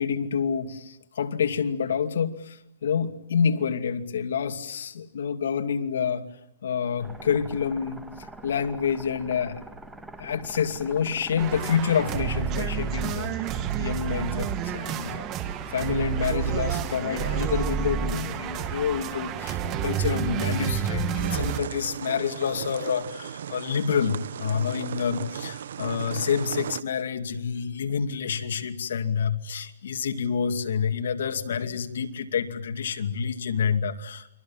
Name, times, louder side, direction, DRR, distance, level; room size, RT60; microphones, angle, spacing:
voice 1, 0.0-6.2 6.6-8.0 8.4-9.6 10.2-13.3 13.8-15.3 15.7-34.3, left 7 dB, 70° left, 6 dB, 2.6 m, -28 dB
sound 1, 7.0-19.6, right 2 dB, 5° right, 1.9 m, -44 dB
sound 2, 11.4-21.6, right 8 dB, 25° right, 1.7 m, -29 dB
sound 3, 21.1-26.8, right 9 dB, 65° right, 0.9 m, -36 dB
29.5 x 23.5 x 7.5 m, 0.86 s
hypercardioid pair, 165°, 0 cm